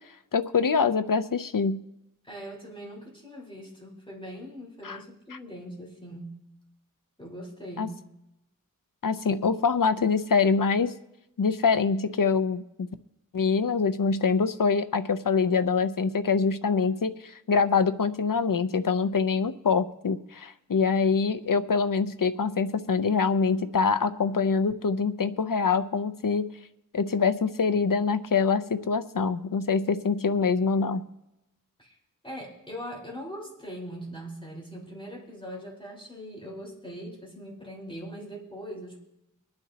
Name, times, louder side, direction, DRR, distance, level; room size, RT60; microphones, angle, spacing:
voice 1, 0.3-1.8 4.8-5.0 7.8-7.9 9.0-10.9 11.4-12.9 13.3-26.5 26.9-31.0, left 5 dB, 80° left, 12 dB, 0.7 m, -25 dB
voice 2, 2.2-6.4 7.2-8.0 30.4-30.8 31.8-31.9 32.2-39.0, equal, 15° left, -3 dB, 4.4 m, -41 dB
24.0 x 9.8 x 2.9 m, 0.90 s
wide cardioid pair, 40°, 33 cm